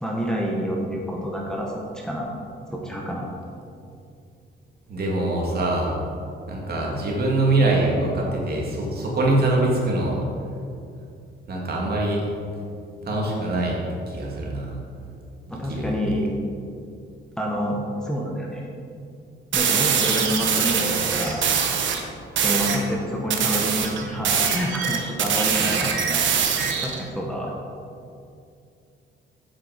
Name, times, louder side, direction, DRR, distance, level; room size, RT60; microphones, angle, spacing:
voice 1, 0.0-2.3 2.7-3.3 15.5-16.4 17.4-18.7 19.5-21.5 22.4-26.2 26.8-27.5, equal, 5° left, -3 dB, 1.5 m, -28 dB
voice 2, 4.9-6.0 6.5-10.2 11.5-12.3 13.0-13.8 14.1-14.7 15.7-16.0, right 2 dB, 50° right, -3 dB, 2.4 m, -23 dB
sound 1, 19.5-22.0 22.4-22.8 23.3-27.0, right 7 dB, 70° right, 1.2 m, -23 dB
8.1 x 7.0 x 5.3 m, 2.5 s
cardioid pair, 90°, 20 cm